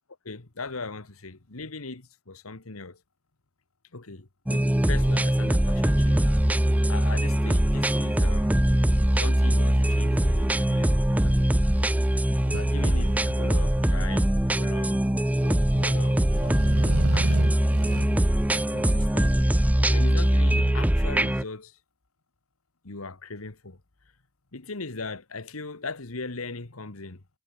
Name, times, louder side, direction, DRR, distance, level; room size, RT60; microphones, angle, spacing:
voice 1, 0.2-3.0 3.9-8.5 9.1-11.6 12.4-15.0 15.4-16.6 17.1-17.6 18.5-19.4 19.9-21.8 22.8-23.8 24.5-27.2, left 3 dB, 85° left, 1.7 m, -39 dB
sound 1, 4.5-21.4, right 1 dB, 5° right, 0.6 m, -22 dB
sound 2, 12.5-13.8 16.0-18.1, right 3 dB, 80° right, 0.7 m, -34 dB
head